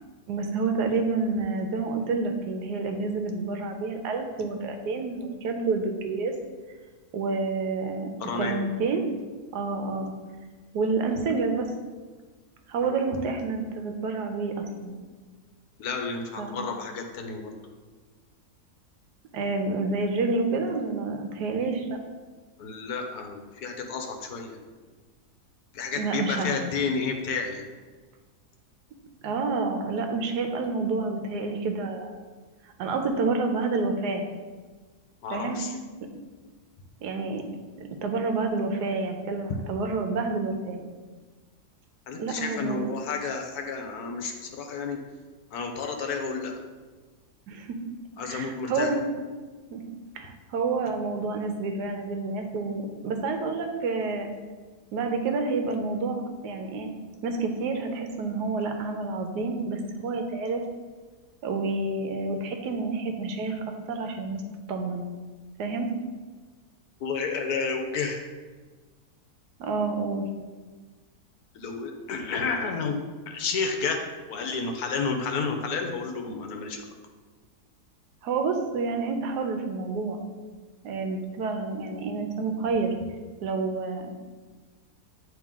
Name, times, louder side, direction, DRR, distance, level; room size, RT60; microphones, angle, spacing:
voice 1, 0.3-6.3 7.1-9.1 9.5-10.1 10.7-11.7 12.7-14.9 16.4-16.5 19.3-21.9 26.0-26.5 29.2-32.2 32.8-34.2 35.3-35.6 37.0-37.4 37.8-40.8 42.2-42.9 47.5-47.8 48.2-49.0 49.7-49.8 50.1-54.3 54.9-56.9 57.2-60.6 61.4-63.6 63.9-64.4 64.7-65.0 65.6-65.9 69.6-70.3 78.2-80.2 80.8-82.9 83.4-84.2, right 3 dB, 85° right, 4 dB, 1.3 m, -29 dB
voice 2, 8.2-8.6 12.8-13.0 15.8-17.5 22.6-24.6 25.7-27.7 35.2-35.8 42.1-45.0 45.5-46.6 48.2-48.9 67.0-68.3 71.5-73.0 73.3-74.0 74.3-76.8, left 4 dB, 75° left, 3 dB, 1.2 m, -31 dB
8.8 x 3.3 x 3.6 m, 1.4 s
omnidirectional pair, 1.7 m